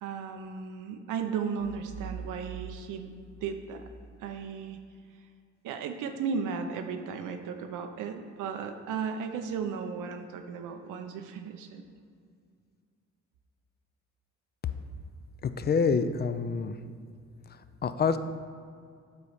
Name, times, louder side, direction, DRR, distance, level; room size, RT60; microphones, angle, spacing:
voice 1, 0.0-3.1 3.4-3.8 4.2-4.8 5.6-11.8, right 6 dB, 85° right, 6 dB, 0.7 m, -35 dB
sound 1, 1.6-4.5, right 6 dB, 70° right, 1.3 m, -44 dB
voice 2, 15.4-16.8 17.5-18.2, left 5 dB, 35° left, 10 dB, 0.4 m, -27 dB
8.2 x 4.0 x 4.9 m, 2.2 s
cardioid pair, 90°, 30 cm